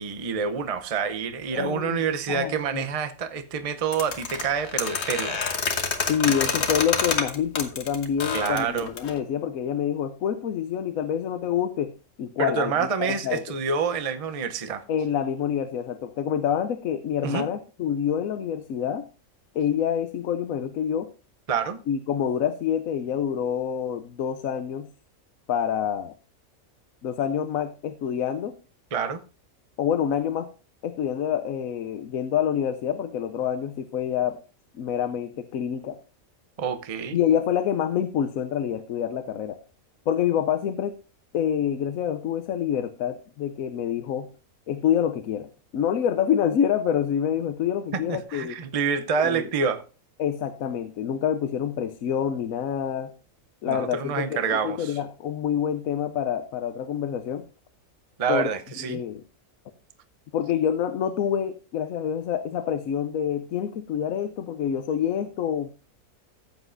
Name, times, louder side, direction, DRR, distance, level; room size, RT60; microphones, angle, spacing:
voice 1, 0.0-5.5 6.2-6.3 8.3-8.9 12.4-14.8 17.2-17.5 21.5-21.8 28.9-29.2 36.6-37.2 48.1-49.8 53.7-55.0 58.2-59.0, right 6 dB, 35° right, 0.7 m, -27 dB
voice 2, 1.5-2.0 2.3-2.9 6.1-11.9 12.2-13.4 14.9-19.1 19.5-21.1 21.9-24.9 25.5-26.1 27.0-28.5 29.8-30.5 30.8-34.4 34.7-36.0 37.1-39.6 40.1-40.9 41.3-44.3 44.7-45.5 45.7-48.6 49.2-49.5 50.2-53.1 53.6-57.4 58.3-58.5 58.9-59.2 60.3-65.7, left 9 dB, 75° left, 1.1 m, -27 dB
sound 1, 3.9-9.2, left 5 dB, 55° left, 1.4 m, -27 dB
14.5 x 8.0 x 2.6 m
omnidirectional pair, 1.5 m